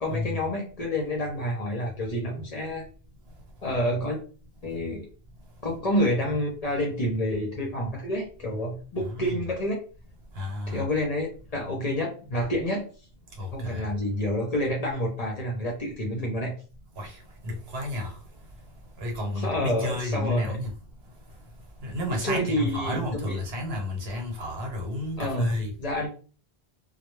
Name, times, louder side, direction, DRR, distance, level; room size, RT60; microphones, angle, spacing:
voice 1, 0.0-2.9 3.6-4.2 4.6-5.1 5.6-9.7 10.7-11.3 11.5-12.8 13.5-16.5 19.4-20.6 22.2-23.4 25.2-25.5 25.8-26.1, equal, 45° left, 0.6 m, -28 dB
voice 2, 10.4-10.8 13.4-13.9 17.0-17.1 17.4-18.1 19.0-20.7 21.8-25.7, left 1 dB, 75° right, 1.0 m, -31 dB
2.2 x 2.0 x 3.0 m
omnidirectional pair, 1.1 m